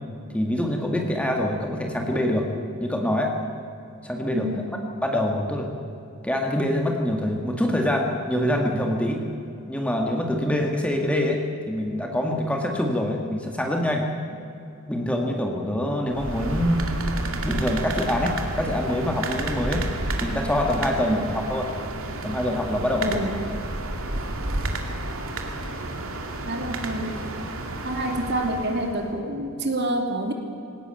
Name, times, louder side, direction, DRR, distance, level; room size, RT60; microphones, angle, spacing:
voice 1, 0.3-2.5 2.8-3.3 4.0-4.6 5.0-5.7 6.2-9.2 9.7-11.4 11.7-14.0 14.9-16.9 17.4-19.9 20.2-21.7 22.2-23.3, left 1 dB, 5° left, 1 dB, 1.8 m, -25 dB
voice 2, 4.3-4.7 21.1-21.2 23.0-23.3 26.5-27.1 27.8-30.3, right 1 dB, 50° right, 3 dB, 2.8 m, -27 dB
sound 1, 16.1-29.1, right 2 dB, 70° right, 2.5 m, -31 dB
20.0 x 18.0 x 9.0 m, 2.7 s
head